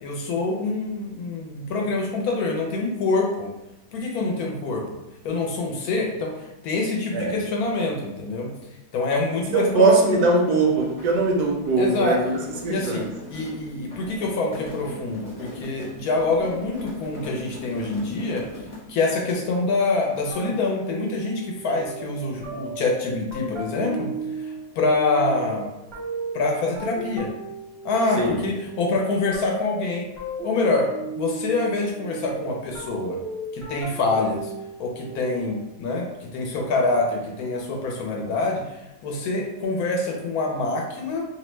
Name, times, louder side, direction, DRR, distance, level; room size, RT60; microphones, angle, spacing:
voice 1, 0.0-3.5 3.9-5.0 5.2-8.5 8.9-10.3 11.8-12.2 12.7-18.5 18.9-24.1 24.4-25.7 26.3-27.3 27.8-30.1 30.4-30.9 31.2-33.2 33.5-34.5 34.8-41.2, left 3 dB, 75° left, 0 dB, 1.0 m, -26 dB
voice 2, 9.5-13.1 28.2-28.4, right 3 dB, 80° right, 0 dB, 1.1 m, -21 dB
sound 1, 10.5-19.0, equal, 25° left, 0.8 m, -40 dB
sound 2, 20.3-35.7, right 3 dB, 25° right, 0.6 m, -36 dB
2.8 x 2.1 x 3.1 m, 0.93 s
omnidirectional pair, 1.7 m